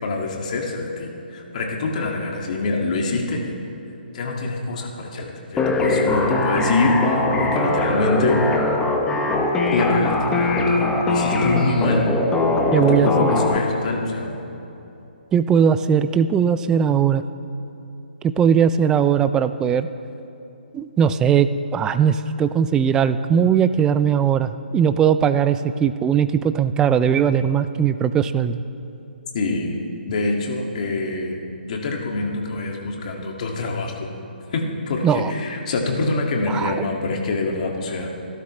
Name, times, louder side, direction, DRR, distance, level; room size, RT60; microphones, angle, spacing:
voice 1, 0.0-3.6 4.1-8.4 9.7-12.0 12.7-14.3 29.3-29.7 30.1-31.4 31.7-34.1 34.5-38.2, left 3 dB, 45° left, 0 dB, 2.1 m, -25 dB
sound 1, 5.6-13.6, left 2 dB, 10° left, 1.1 m, -21 dB
voice 2, 12.7-13.4 15.3-17.2 18.4-19.9 20.7-28.6 35.0-35.3 36.5-36.8, right 8 dB, 10° right, 12 dB, 0.4 m, -19 dB
27.0 x 12.5 x 3.2 m, 2.9 s
figure-of-eight pair, 145°, 6 cm